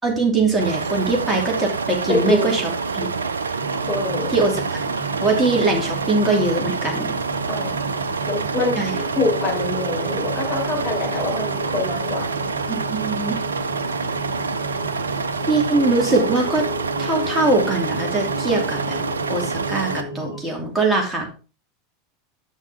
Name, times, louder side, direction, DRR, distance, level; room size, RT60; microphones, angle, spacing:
voice 1, 0.0-3.1 4.3-4.6 5.2-7.1 8.8-9.0 12.7-13.4 15.5-16.6 17.0-19.0 19.3-21.3, right 3 dB, 10° right, 0 dB, 2.8 m, -22 dB
sound 1, 0.6-20.0, right 5 dB, 75° right, 0.6 m, -27 dB
voice 2, 2.1-2.5 3.9-4.3 7.5-12.2, left 2 dB, 10° left, -7 dB, 4.3 m, -25 dB
sound 2, 3.6-20.4, left 1 dB, 90° left, 3.1 m, -33 dB
11.0 x 6.5 x 3.6 m, 0.33 s
figure-of-eight pair, 80°, 0 cm